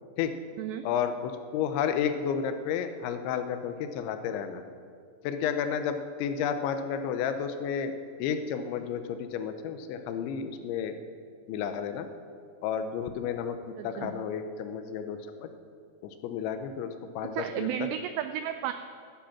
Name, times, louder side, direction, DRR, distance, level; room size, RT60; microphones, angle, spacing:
voice 1, 0.8-4.6 5.2-7.9 8.2-10.9 11.5-12.1 12.6-15.5 16.0-16.9 17.2-17.9, left 7 dB, 80° left, 8 dB, 3.1 m, -31 dB
voice 2, 13.8-14.2 17.3-18.7, right 11 dB, 85° right, 9 dB, 2.4 m, -33 dB
16.0 x 12.5 x 5.9 m, 2.2 s
omnidirectional pair, 5.5 m